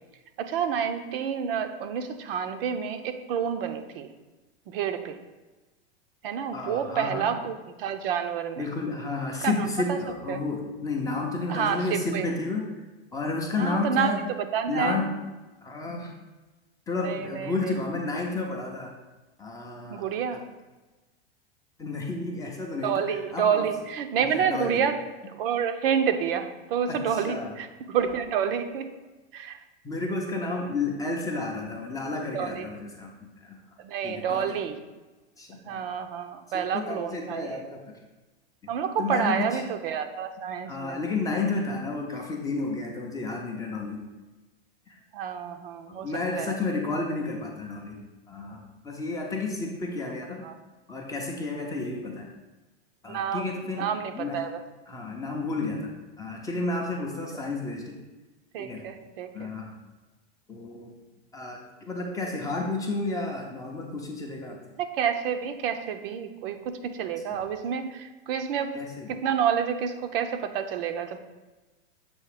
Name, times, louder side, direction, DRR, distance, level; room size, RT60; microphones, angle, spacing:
voice 1, 0.4-4.1 4.7-5.2 6.2-8.7 9.4-10.0 10.3-10.4 11.5-12.3 13.6-14.1 14.4-15.0 17.0-17.8 19.9-20.4 22.8-25.0 25.3-28.9 29.3-29.6 32.3-32.7 33.8-34.8 35.5-37.6 38.7-41.0 45.1-46.1 46.4-46.6 50.4-50.5 53.1-54.6 58.5-59.5 64.8-68.8 69.1-71.2, right 7 dB, 65° right, 7 dB, 0.6 m, -29 dB
voice 2, 6.5-7.3 8.6-12.7 13.1-14.3 14.7-15.2 15.6-16.1 16.9-18.9 19.4-20.1 20.3-20.4 21.8-23.7 24.3-24.9 26.9-27.5 29.8-33.6 34.0-34.6 35.4-35.8 36.5-37.8 39.0-39.6 40.7-44.0 44.9-45.0 45.9-48.0 48.3-50.5 50.9-52.3 53.0-53.9 54.1-54.5 54.9-58.0 58.6-58.9 59.3-59.7 60.5-60.9 61.3-64.6 67.3-67.4 68.7-69.1, left 3 dB, 10° left, -1 dB, 0.5 m, -31 dB
7.0 x 2.8 x 4.9 m, 1.2 s
supercardioid pair, 145°, 31 cm